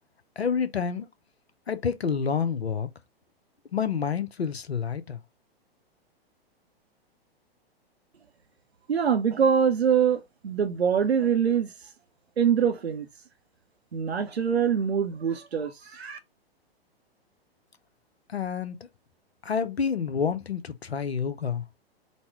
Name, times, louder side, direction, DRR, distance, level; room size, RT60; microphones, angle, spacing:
voice 1, 0.4-1.1 1.7-2.9 3.7-5.2 18.3-18.8 19.4-21.6, left 6 dB, 90° left, 0.8 m, -28 dB
voice 2, 8.9-11.7 12.4-13.1 13.9-16.2, right 7 dB, 90° right, 0.6 m, -24 dB
4.1 x 2.2 x 4.5 m
figure-of-eight pair, 110°, 31 cm